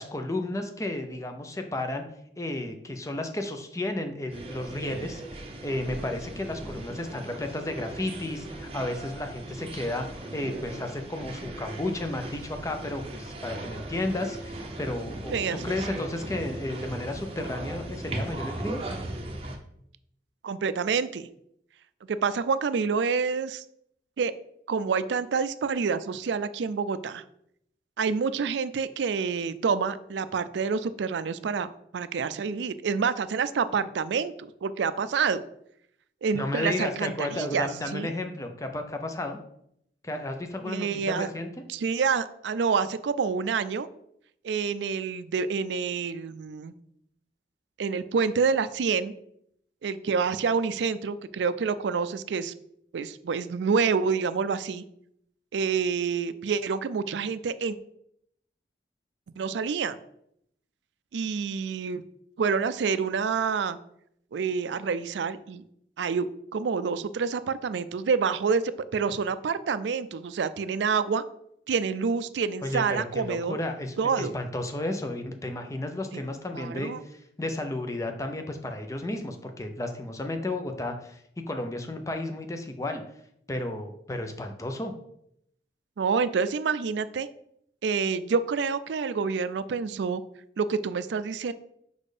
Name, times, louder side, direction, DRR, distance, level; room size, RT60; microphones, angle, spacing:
voice 1, 0.0-2.0 2.4-18.8 36.3-39.4 40.0-41.5 72.6-83.0 83.5-84.9, left 1 dB, 15° left, 6 dB, 0.6 m, -33 dB
sound 1, 4.3-19.6, right 1 dB, 30° right, 0.7 m, -38 dB
voice 2, 15.3-15.8 20.4-21.3 22.1-23.6 24.2-24.3 24.7-27.2 28.0-35.4 36.2-38.1 40.6-41.3 41.7-43.9 44.4-46.7 47.8-49.1 49.8-52.5 52.9-54.8 55.5-57.8 59.4-60.0 61.1-62.0 62.4-63.8 64.3-65.6 66.0-68.6 68.9-71.2 71.7-73.6 74.0-74.3 76.1-76.2 76.5-77.0 86.0-87.3 87.8-90.2 90.6-91.5, right 5 dB, 80° right, 14 dB, 0.4 m, -27 dB
5.3 x 4.3 x 4.9 m, 0.73 s
head